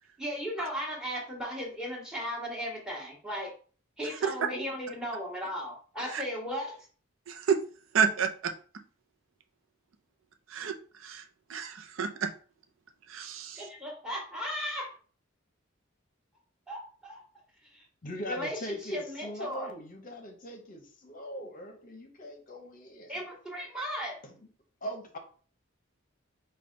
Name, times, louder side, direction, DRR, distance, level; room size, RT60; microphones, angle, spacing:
voice 1, 0.2-3.5 4.0-6.9 13.5-14.9 16.7-17.2 17.6-17.9 18.3-19.7 23.1-24.2, equal, 5° right, -2 dB, 1.3 m, -36 dB
voice 2, 7.3-7.6 7.9-8.5 10.5-10.8 11.0-11.2 11.5-12.3 13.1-13.6, right 6 dB, 75° right, 5 dB, 0.5 m, -29 dB
voice 3, 18.0-23.2 24.8-25.2, equal, 40° left, 4 dB, 0.7 m, -40 dB
5.1 x 2.3 x 3.7 m, 0.41 s
head